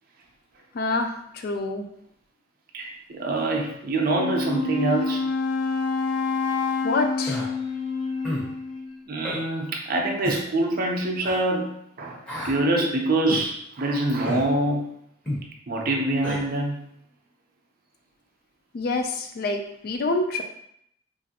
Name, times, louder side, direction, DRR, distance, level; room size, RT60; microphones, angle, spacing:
voice 1, 0.7-1.8 6.8-7.4 18.7-20.4, left 3 dB, 50° left, 4 dB, 0.4 m, -27 dB
voice 2, 2.7-5.3 9.1-14.9 15.7-16.8, right 2 dB, 45° right, 1 dB, 0.5 m, -25 dB
Wind instrument woodwind instrument, 4.0-9.0, left 4 dB, 85° left, 0.9 m, -27 dB
Human voice, 7.3-7.5 8.2-8.5 9.2-9.4 10.2-10.4 11.2-11.4 12.3-12.6 13.3-13.5 14.3-14.5 15.3-15.4 16.2-16.4, left 1 dB, 5° left, 0.6 m, -31 dB
2.9 x 2.5 x 2.8 m, 0.71 s
head